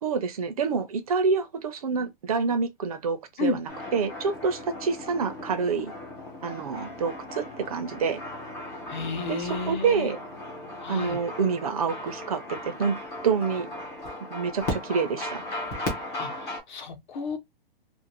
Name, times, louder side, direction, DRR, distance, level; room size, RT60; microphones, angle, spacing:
voice 1, 0.0-5.9 6.4-8.2 9.3-10.2 10.9-13.0 13.2-13.7 14.3-15.4, right 5 dB, 40° right, 0.6 m, -27 dB
sound 1, 3.7-16.6, left 1 dB, 10° left, 0.5 m, -37 dB
voice 2, 8.9-10.1 10.8-11.2 16.2-17.4, left 3 dB, 55° left, 0.9 m, -32 dB
2.5 x 2.5 x 2.9 m
hypercardioid pair, 170°, 29 cm